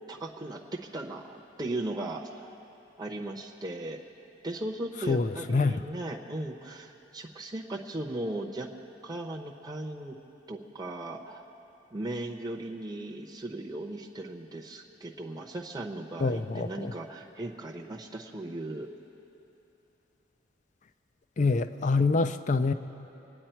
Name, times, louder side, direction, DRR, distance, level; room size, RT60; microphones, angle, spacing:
voice 1, 0.1-2.5 3.0-4.0 4.4-8.7 9.0-10.2 10.5-11.4 11.9-18.9, right 1 dB, 20° right, -1 dB, 0.7 m, -37 dB
voice 2, 5.1-5.8 16.2-16.9 21.4-22.7, left 3 dB, 40° left, 11 dB, 0.4 m, -26 dB
25.5 x 9.5 x 4.5 m, 3.0 s
head